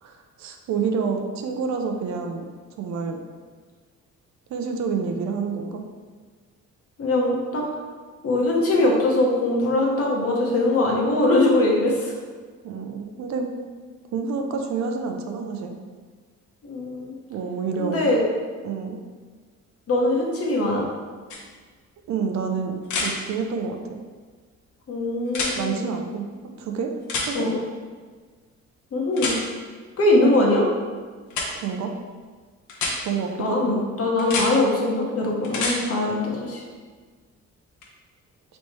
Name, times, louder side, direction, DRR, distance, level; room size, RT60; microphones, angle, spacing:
voice 1, 0.0-2.5 2.8-3.2 4.5-5.8 12.6-13.5 14.1-15.7 17.3-18.1 18.6-19.0 22.1-24.0 25.5-26.3 26.6-26.9 27.3-27.5 31.5-31.9 33.0-33.8, right 5 dB, 65° right, 4 dB, 0.6 m, -28 dB
voice 2, 7.0-7.6 8.2-12.1 16.6-17.2 17.8-18.2 19.9-20.8 24.9-25.9 27.3-27.6 28.9-29.4 30.0-30.7 33.4-36.6, left 2 dB, 50° left, -2 dB, 1.1 m, -22 dB
sound 1, 21.3-21.4 22.8-23.1 25.3-25.5 27.1-27.3 29.2-29.4 31.3-31.5 32.7-32.9 34.2-34.5 35.4-35.8 37.8-37.9, left 3 dB, 70° left, 0.9 m, -26 dB
3.3 x 3.1 x 4.3 m, 1.5 s
cardioid pair, 90°, 30 cm